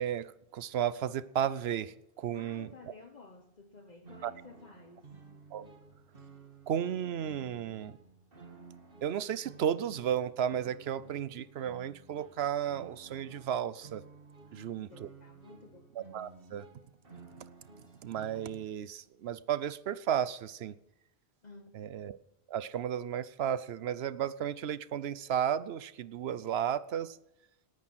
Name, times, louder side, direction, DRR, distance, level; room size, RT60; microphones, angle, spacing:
voice 1, 0.0-2.7 4.2-4.3 5.5-5.7 6.7-8.0 9.0-14.0 14.5-15.1 16.0-16.7 18.0-20.7 21.7-22.2 22.5-27.2, right 9 dB, 75° right, 17 dB, 0.9 m, -33 dB
voice 2, 2.3-5.1 14.5-15.9 21.4-21.8, left 4 dB, 45° left, 6 dB, 1.1 m, -53 dB
sound 1, 4.0-18.7, right 4 dB, 60° right, 2.2 m, -54 dB
18.5 x 9.8 x 6.2 m, 0.89 s
omnidirectional pair, 1.1 m